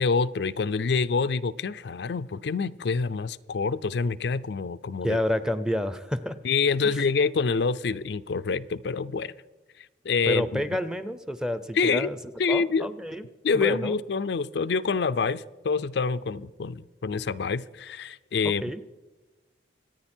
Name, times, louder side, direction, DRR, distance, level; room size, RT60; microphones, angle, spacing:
voice 1, 0.0-5.2 6.4-9.3 10.0-10.6 11.8-12.1 12.4-12.9 13.4-18.6, left 4 dB, 70° left, 0.4 m, -26 dB
voice 2, 5.0-6.4 6.8-7.0 10.2-12.2 12.5-13.2 13.5-14.0 18.6-18.8, left 1 dB, 5° right, 0.6 m, -29 dB
25.5 x 9.2 x 4.4 m
head